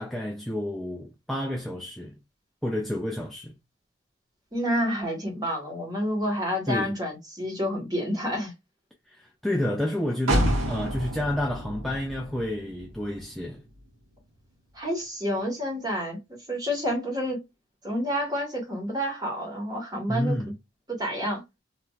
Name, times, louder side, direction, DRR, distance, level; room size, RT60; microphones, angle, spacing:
voice 1, 0.0-2.2 2.6-3.6 6.7-6.9 9.1-13.6 20.1-20.5, left 1 dB, ahead, 0.3 m, -30 dB
voice 2, 4.5-8.5 14.7-16.2 16.5-17.4 17.8-20.4 20.9-21.4, equal, 20° right, 1.4 m, -29 dB
sound 1, 10.3-14.0 14.4-14.5, equal, 75° right, 1.1 m, -29 dB
3.1 x 2.7 x 2.3 m
head